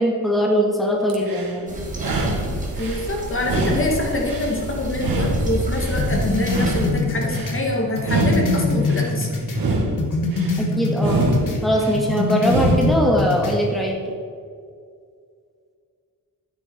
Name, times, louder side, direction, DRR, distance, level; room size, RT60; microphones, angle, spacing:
voice 1, 0.0-1.8 10.6-11.2 11.6-14.0, equal, ahead, -1 dB, 1.9 m, -21 dB
sound 1, 1.1-1.6 1.9-3.1 3.4-4.6 4.9-6.0 6.4-7.5 8.0-9.1 9.5-10.6 11.0-12.0 12.4-13.1, right 2 dB, 90° right, 2.0 m, -25 dB
sound 2, 1.7-6.9, right 1 dB, 20° right, 2.3 m, -29 dB
voice 2, 2.8-9.4, left 2 dB, 35° left, 0 dB, 1.8 m, -25 dB
sound 3, 6.0-9.7 10.0-11.6 11.9-13.6, left 2 dB, 65° left, 1.9 m, -24 dB
13.0 x 10.5 x 4.6 m, 2.2 s
wide cardioid pair, 155°, 34 cm